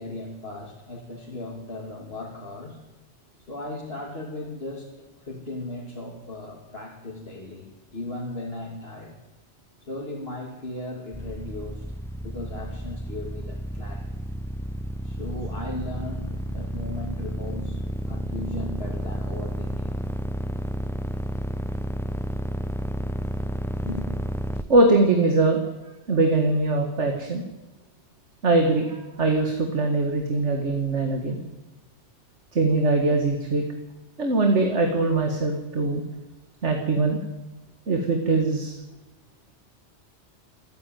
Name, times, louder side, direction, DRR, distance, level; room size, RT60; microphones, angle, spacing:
voice 1, 0.0-2.8 3.5-4.9 5.2-7.7 7.9-9.2 9.8-11.8 12.2-14.1 15.0-17.8 18.1-20.0 23.8-24.1, left 2 dB, 55° left, -3 dB, 3.1 m, -37 dB
sound 1, 11.1-24.6, right 1 dB, 5° left, 0.7 m, -31 dB
voice 2, 24.7-25.6 26.1-27.4 28.4-31.4 32.5-33.6 34.2-36.0 36.6-37.2 37.9-38.7, right 2 dB, 80° right, 4 dB, 2.2 m, -22 dB
27.0 x 10.5 x 9.3 m, 1.1 s
omnidirectional pair, 1.2 m